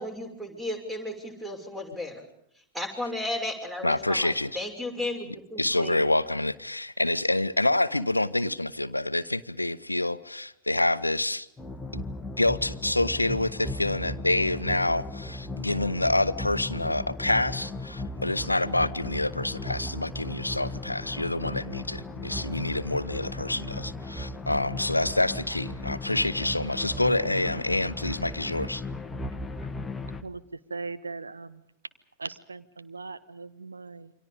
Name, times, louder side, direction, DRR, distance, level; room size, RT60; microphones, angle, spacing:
voice 1, 0.0-2.2 2.7-6.0, left 1 dB, 10° right, 6 dB, 6.2 m, -34 dB
voice 2, 3.8-4.5 5.6-11.5 11.9-12.0 12.4-28.8, left 2 dB, 85° left, 15 dB, 0.9 m, -27 dB
sound 1, 11.6-30.2, left 2 dB, 10° left, 1.5 m, -36 dB
voice 3, 30.2-31.6 32.2-34.1, right 4 dB, 75° right, 12 dB, 1.3 m, -39 dB
29.0 x 24.5 x 5.2 m, 0.74 s
figure-of-eight pair, 90°, 0 cm